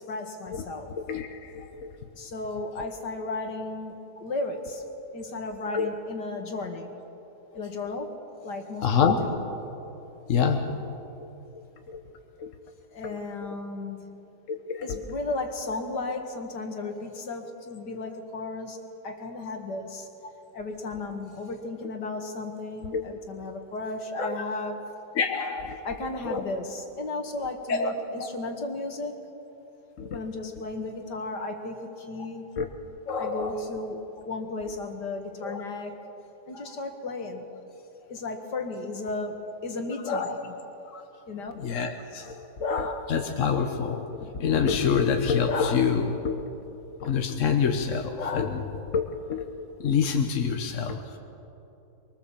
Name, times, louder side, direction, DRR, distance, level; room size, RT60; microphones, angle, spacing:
voice 1, 0.0-1.0 2.1-4.8 5.1-6.9 7.5-8.1 8.4-9.4 12.9-14.2 14.8-20.1 20.5-24.8 25.8-29.2 30.1-32.5 33.2-36.0 36.5-37.5 38.1-40.4 41.3-41.5, left 2 dB, 85° left, 5 dB, 2.5 m, -34 dB
voice 2, 1.1-1.9 5.7-5.9 8.8-9.3 10.3-10.9 11.9-12.0 12.4-12.5 13.0-13.2 14.5-15.0 22.9-23.0 24.2-24.3 25.2-25.9 26.2-26.4 27.7-28.3 30.0-30.2 32.6-32.7 33.1-33.6 35.4-35.6 36.5-36.7 40.1-40.3 40.9-41.0 41.6-46.5 47.0-49.5 49.8-51.2, left 6 dB, 50° left, 5 dB, 1.4 m, -27 dB
24.0 x 23.0 x 7.4 m, 3.0 s
omnidirectional pair, 1.8 m